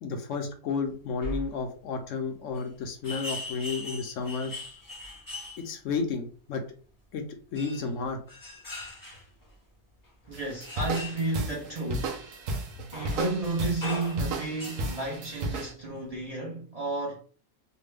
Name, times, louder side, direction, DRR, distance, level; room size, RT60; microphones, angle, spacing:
voice 1, 0.0-4.5 5.6-6.6 7.1-7.2 7.5-8.2 12.7-12.9, left 5 dB, 70° left, 0.9 m, -32 dB
sound 1, 0.9-1.0 1.2-1.5 2.6-2.7 3.0-6.0 7.5-9.5 10.2-11.3 11.9-12.0 12.9-13.5 13.8-15.2 15.9-16.0, left 1 dB, 20° left, 0.5 m, -40 dB
voice 2, 10.3-12.1 12.9-17.2, right 2 dB, 35° right, 0.6 m, -32 dB
sound 2, 10.3-15.7, right 2 dB, 70° right, 1.0 m, -34 dB
3.2 x 2.1 x 3.3 m
omnidirectional pair, 1.5 m